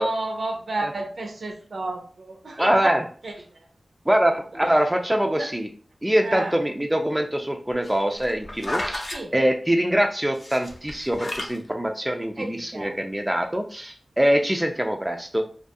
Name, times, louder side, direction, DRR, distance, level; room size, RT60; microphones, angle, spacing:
voice 1, 0.0-3.0 3.2-3.6 5.4-5.5 6.2-6.6 9.1-9.3 12.4-13.0, right 2 dB, 70° right, 3 dB, 0.5 m, -31 dB
voice 2, 2.6-3.1 4.1-5.7 6.0-15.4, equal, 10° right, 3 dB, 0.3 m, -23 dB
sound 1, 7.7-9.2 10.4-11.6 12.2-12.3, left 1 dB, 50° left, 0.6 m, -32 dB
2.3 x 2.3 x 2.6 m, 0.41 s
wide cardioid pair, 70°, 0 cm